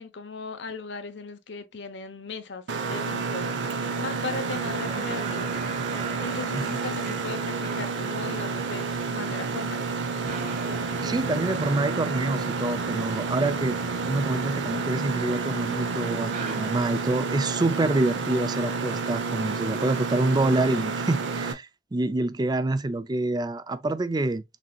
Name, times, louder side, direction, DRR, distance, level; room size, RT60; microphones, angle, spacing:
voice 1, 0.0-5.5 6.2-9.8, left 4 dB, 65° left, 0.8 m, -37 dB
Mechanisms, 2.7-21.5, right 4 dB, 75° right, 0.7 m, -30 dB
sound 1, 4.4-17.1, right 2 dB, 45° right, 1.9 m, -40 dB
voice 2, 6.5-6.8 11.0-13.8 14.0-24.4, right 2 dB, 20° right, 0.4 m, -27 dB
6.1 x 2.8 x 2.3 m
head